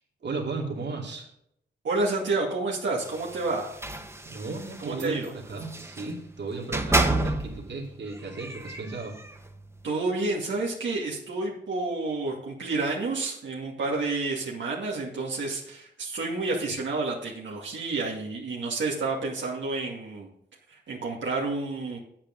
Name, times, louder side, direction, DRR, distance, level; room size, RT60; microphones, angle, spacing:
voice 1, 0.2-1.3 4.2-9.2, right 3 dB, 70° right, -1 dB, 2.8 m, -35 dB
voice 2, 1.8-3.7 4.8-5.3 9.8-20.3 20.7-22.0, right 3 dB, 90° right, -3 dB, 2.4 m, -29 dB
sound 1, 3.0-6.1 6.6-7.7 8.1-9.5, right 2 dB, 15° right, 1.5 m, -30 dB
8.9 x 8.8 x 5.3 m, 0.71 s
wide cardioid pair, 85°, 19 cm